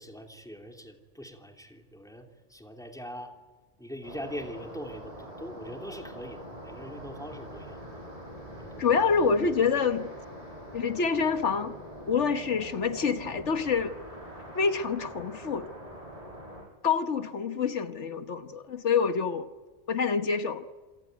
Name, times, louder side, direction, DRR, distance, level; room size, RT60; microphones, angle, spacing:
voice 1, 0.0-3.3 3.8-7.8 8.6-8.9, equal, 5° left, 3 dB, 3.0 m, -42 dB
sound 1, 4.0-16.6, equal, 30° right, 8.0 m, -44 dB
voice 2, 8.8-10.1 10.7-11.7 12.1-14.0 14.5-15.7 16.8-19.5 19.9-20.6, left 5 dB, 75° left, 9 dB, 1.5 m, -27 dB
27.5 x 19.0 x 9.4 m, 1.3 s
omnidirectional pair, 1.2 m